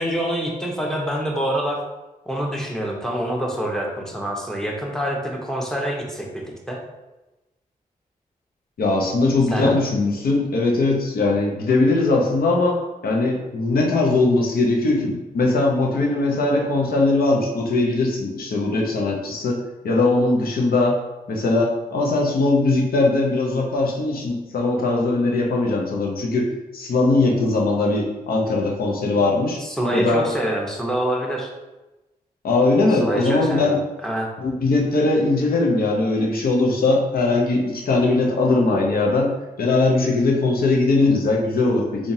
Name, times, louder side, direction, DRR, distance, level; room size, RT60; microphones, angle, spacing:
voice 1, 0.0-1.8 2.3-6.8 9.5-9.7 29.6-31.5 32.9-34.3, equal, 5° left, -1 dB, 0.9 m, -26 dB
voice 2, 8.8-21.0 21.3-29.6 29.9-30.3 32.4-33.8 34.4-39.3 39.6-42.1, left 2 dB, 70° left, 0 dB, 0.7 m, -20 dB
3.8 x 2.4 x 2.7 m, 1.1 s
supercardioid pair, 40°, 16 cm